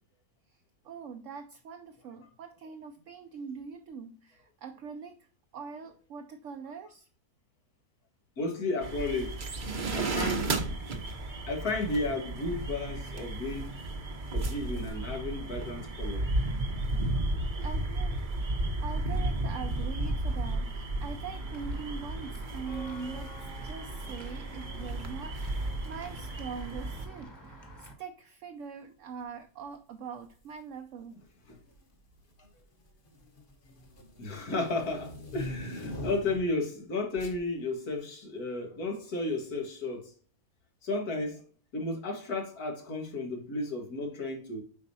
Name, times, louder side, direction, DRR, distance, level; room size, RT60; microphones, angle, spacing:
voice 1, 0.5-5.3 5.5-7.1 17.6-18.2 18.8-23.3 23.6-31.2, right 6 dB, 65° right, 0.9 m, -43 dB
voice 2, 8.4-9.4 9.9-10.5 11.5-13.7 14.3-16.3 34.2-40.1 40.8-41.5 41.7-44.6, left 2 dB, 85° left, 2.1 m, -33 dB
sound 1, 8.8-27.1, right 2 dB, 40° right, 0.9 m, -33 dB
Walk footsteps / Bell, 21.2-27.9, right 1 dB, 15° left, 1.3 m, -49 dB
sound 2, 30.2-30.5 31.5-31.9 32.3-36.6 37.2-37.4, left 1 dB, 35° left, 1.4 m, -42 dB
7.8 x 5.0 x 2.7 m
omnidirectional pair, 1.6 m